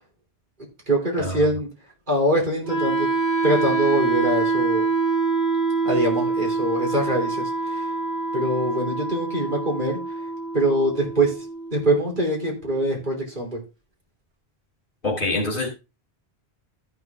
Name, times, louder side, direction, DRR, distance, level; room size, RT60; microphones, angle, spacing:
voice 1, 0.9-1.7 2.1-3.1 3.4-4.8 5.8-7.8 8.3-10.0 10.5-11.4 11.7-13.6, right 1 dB, 50° right, -1 dB, 3.3 m, -23 dB
Wind instrument woodwind instrument, 2.6-12.7, right 3 dB, 85° right, 2.2 m, -25 dB
voice 2, 15.0-15.7, left 2 dB, 55° left, 1 dB, 3.4 m, -25 dB
13.5 x 6.0 x 3.5 m, 0.29 s
omnidirectional pair, 1.1 m